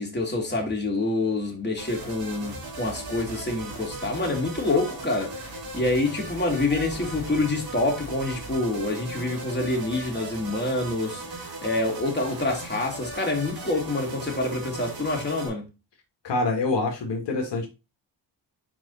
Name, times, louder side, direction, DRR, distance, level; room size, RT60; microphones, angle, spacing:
voice 1, 0.0-5.3 5.7-11.2 11.6-15.6, left 2 dB, 25° left, 2.9 m, -27 dB
sound 1, 1.8-15.5, right 2 dB, 55° right, 2.9 m, -38 dB
voice 2, 16.2-17.7, left 3 dB, 65° left, 1.7 m, -25 dB
5.2 x 4.7 x 4.2 m
cardioid pair, 70°, 45 cm